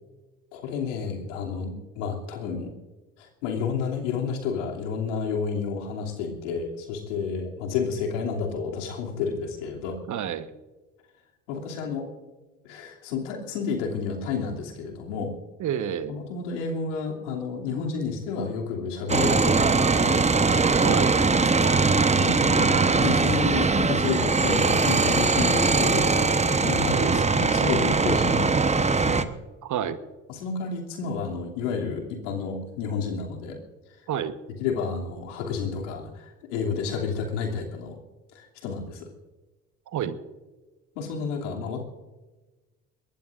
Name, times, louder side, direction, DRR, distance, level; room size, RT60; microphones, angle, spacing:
voice 1, 0.5-2.7 3.2-10.0 11.5-12.1 12.6-15.3 16.1-20.2 21.7-29.2 30.3-33.6 34.6-38.0 38.3-39.1 40.9-41.8, left 5 dB, 85° left, 0 dB, 2.9 m, -31 dB
voice 2, 10.1-10.5 15.6-16.1 20.8-21.1 26.9-27.3 29.6-30.0 34.1-34.3 39.9-40.2, right 9 dB, 55° right, 12 dB, 1.3 m, -29 dB
sound 1, 19.1-29.3, right 4 dB, 20° right, 1.1 m, -21 dB
22.0 x 19.0 x 2.6 m, 1.2 s
hypercardioid pair, 60°, 36 cm